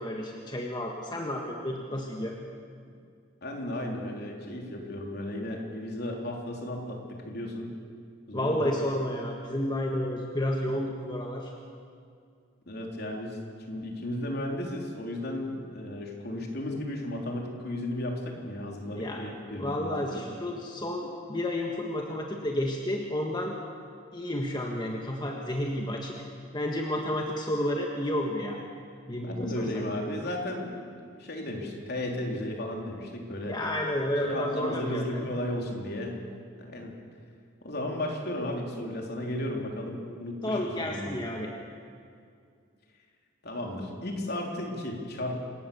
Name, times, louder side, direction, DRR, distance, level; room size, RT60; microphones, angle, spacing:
voice 1, 0.0-2.3 8.3-11.5 19.0-23.6 24.1-26.2 26.5-28.6 29.1-29.6 33.5-35.2 40.4-41.5, left 1 dB, 20° left, 0 dB, 1.7 m, -31 dB
voice 2, 3.4-7.7 8.3-8.7 12.7-13.4 13.7-20.2 29.2-33.6 34.2-36.2 36.6-36.9 37.6-41.1 43.4-45.3, left 1 dB, 55° left, 0 dB, 3.7 m, -34 dB
26.5 x 18.0 x 7.1 m, 2.3 s
head